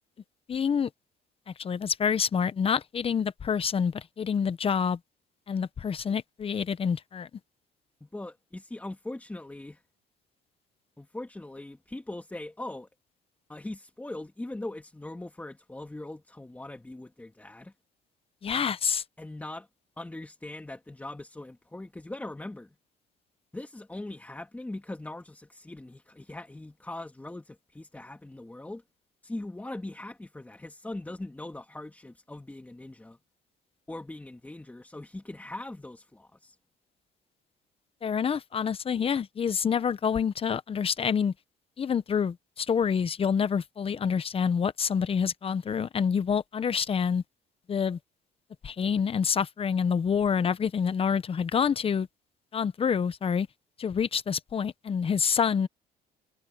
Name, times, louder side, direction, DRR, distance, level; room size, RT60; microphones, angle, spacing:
voice 1, 0.5-0.9 1.5-5.0 5.5-7.3 18.4-19.0 38.0-41.3 41.8-47.2 47.7-48.0 48.6-52.1 52.5-53.5 53.8-55.7, left 7 dB, 35° left, 1.0 m, -27 dB
voice 2, 8.0-9.8 11.0-12.9 13.5-17.7 19.2-19.7 20.0-22.7 23.5-28.8 29.2-33.2 33.9-36.6, left 2 dB, 10° left, 2.2 m, -41 dB
cardioid pair, 110°, 17 cm